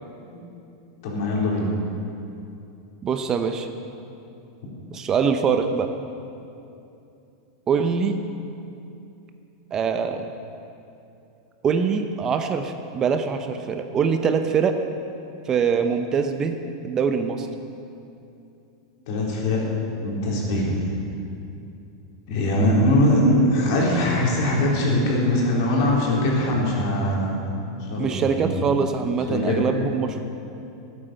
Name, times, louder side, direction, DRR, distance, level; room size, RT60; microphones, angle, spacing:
voice 1, 1.0-1.7 19.1-19.6 20.0-20.8 22.3-28.6 29.3-29.6, left 1 dB, 65° left, -3 dB, 4.0 m, -22 dB
voice 2, 3.0-3.7 4.9-5.9 7.7-8.2 9.7-10.3 11.6-14.8 15.5-16.6 16.8-17.5 28.0-30.2, right 6 dB, 25° right, 7 dB, 0.8 m, -23 dB
12.5 x 9.0 x 7.7 m, 2.7 s
supercardioid pair, 130°, 2 cm